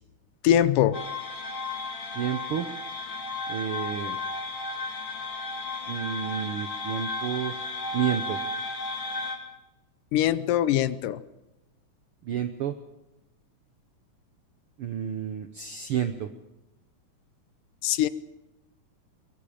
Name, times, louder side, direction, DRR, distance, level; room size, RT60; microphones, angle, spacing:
voice 1, 0.4-1.0 10.1-11.2 17.8-18.1, left 11 dB, 85° left, 14 dB, 2.4 m, -22 dB
sound 1, 0.9-9.4, left 2 dB, 50° left, 3.6 m, -34 dB
voice 2, 2.1-2.7 3.5-4.2 5.9-7.5 7.9-8.4 12.2-12.7 14.8-16.3, right 9 dB, 75° right, 8 dB, 1.2 m, -30 dB
23.5 x 22.5 x 5.1 m, 0.97 s
omnidirectional pair, 3.7 m